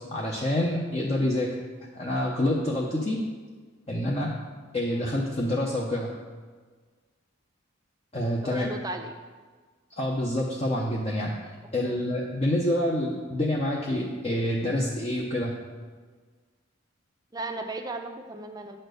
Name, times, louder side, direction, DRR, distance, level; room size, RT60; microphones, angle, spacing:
voice 1, 0.0-1.5 1.9-3.2 3.9-4.3 4.7-6.1 8.1-8.7 9.9-11.4 11.7-15.6, left 1 dB, 30° left, -3 dB, 0.7 m, -27 dB
voice 2, 8.4-9.1 11.8-12.0 17.3-18.8, right 2 dB, 15° right, 5 dB, 0.6 m, -36 dB
9.1 x 4.3 x 6.5 m, 1.5 s
head